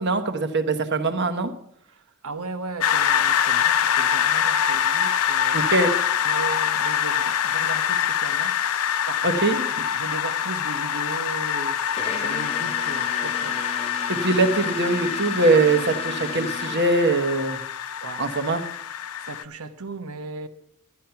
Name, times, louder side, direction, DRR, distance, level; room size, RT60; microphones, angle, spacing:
voice 1, 0.0-1.5 5.5-5.9 9.2-9.7 14.1-17.6 18.2-18.6, right 3 dB, 50° right, 1.1 m, -22 dB
voice 2, 2.2-5.7 6.2-9.6 9.9-13.6 18.0-18.3 19.2-20.5, right 3 dB, 75° right, 1.0 m, -37 dB
sound 1, 2.8-19.4, left 9 dB, 75° left, 0.5 m, -25 dB
sound 2, 12.0-17.5, left 3 dB, 25° left, 0.9 m, -35 dB
12.0 x 10.5 x 5.8 m
head